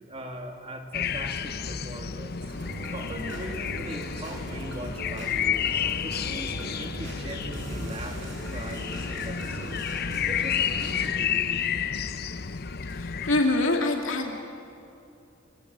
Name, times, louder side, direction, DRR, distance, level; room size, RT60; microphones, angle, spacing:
voice 1, 0.1-2.5 2.9-5.7 6.0-9.9 10.3-11.7, right 1 dB, 30° right, 3 dB, 2.8 m, -40 dB
sound 1, 0.9-13.4, left 7 dB, 55° left, 0.8 m, -31 dB
sound 2, 2.5-11.1, right 1 dB, 65° right, 6.4 m, -41 dB
voice 2, 12.9-14.3, left 2 dB, 75° left, 2 dB, 2.4 m, -25 dB
27.0 x 23.0 x 8.8 m, 2.7 s
head